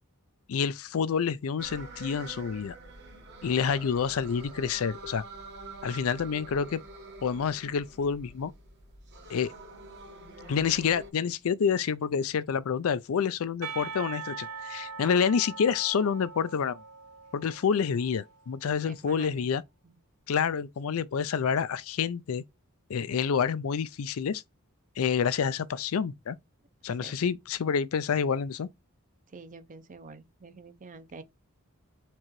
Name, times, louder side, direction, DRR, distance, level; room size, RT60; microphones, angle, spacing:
voice 1, 0.5-2.8 3.4-5.2 5.8-6.8 7.2-8.5 9.3-9.5 10.5-16.8 17.3-19.6 20.3-22.4 22.9-24.4 25.0-26.4 26.8-28.7, left 6 dB, 70° left, 0.4 m, -28 dB
sound 1, 1.6-11.1, right 3 dB, 55° right, 1.3 m, -46 dB
Percussion, 13.6-18.5, right 5 dB, 85° right, 0.8 m, -41 dB
voice 2, 18.8-19.5 19.8-20.0 27.0-27.2 29.3-31.2, right 3 dB, 35° right, 0.6 m, -47 dB
4.5 x 3.8 x 3.0 m
head